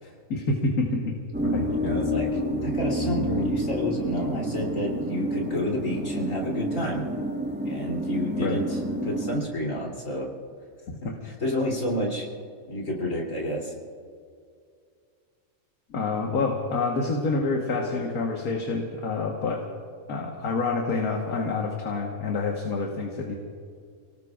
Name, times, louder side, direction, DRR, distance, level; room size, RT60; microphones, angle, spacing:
voice 1, 0.3-1.7 8.3-8.6 11.0-11.1 15.9-19.6 20.1-23.3, left 3 dB, 70° left, 0 dB, 1.8 m, -27 dB
sound 1, 1.3-9.4, equal, 10° right, 1.2 m, -29 dB
voice 2, 1.7-7.1 7.7-10.3 11.2-12.3 12.7-13.7, left 1 dB, 55° left, -3 dB, 3.5 m, -30 dB
30.0 x 18.5 x 2.4 m, 2.2 s
omnidirectional pair, 1.6 m